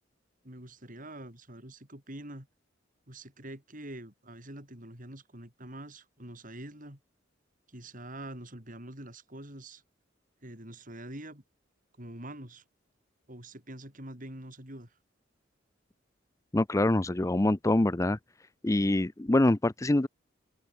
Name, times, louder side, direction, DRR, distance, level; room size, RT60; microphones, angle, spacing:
voice 1, 0.4-2.5 3.1-7.0 7.7-9.8 10.4-11.4 12.0-12.6 13.3-14.9, right 1 dB, 45° right, 7.0 m, -45 dB
voice 2, 16.5-18.2 18.6-20.1, left 1 dB, 15° left, 0.5 m, -25 dB
head